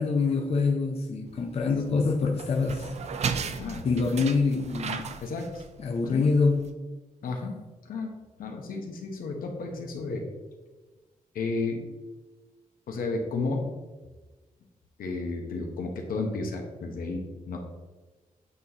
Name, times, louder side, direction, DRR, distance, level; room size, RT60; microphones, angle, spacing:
voice 1, 0.0-2.9 3.8-5.2 5.8-6.7, left 4 dB, 45° left, 2 dB, 0.5 m, -25 dB
sound 1, 1.3-6.7, right 6 dB, 50° right, 0.4 m, -36 dB
voice 2, 5.2-5.6 6.1-6.3 7.2-7.6 7.8-10.3 11.3-11.9 12.9-13.7 15.0-17.6, left 3 dB, 85° left, 3 dB, 0.9 m, -32 dB
8.4 x 4.0 x 2.9 m, 1.2 s
wide cardioid pair, 135°, 14 cm